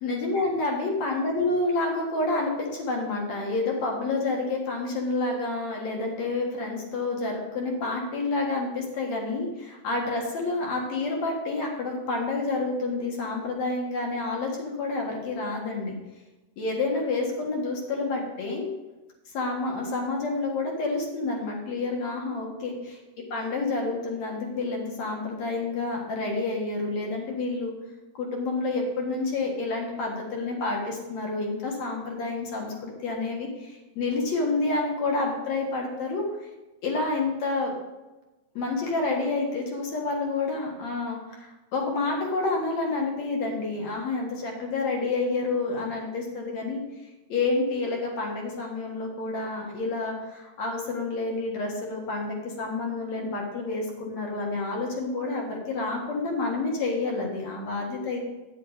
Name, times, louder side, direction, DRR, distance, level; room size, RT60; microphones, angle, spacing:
voice 1, 0.0-15.9 16.6-18.7 19.3-23.0 23.3-27.7 28.2-36.5 36.8-37.7 38.5-46.8 47.3-58.2, left 3 dB, 65° left, 0 dB, 2.9 m, -29 dB
9.6 x 7.6 x 4.0 m, 1.1 s
omnidirectional pair, 3.4 m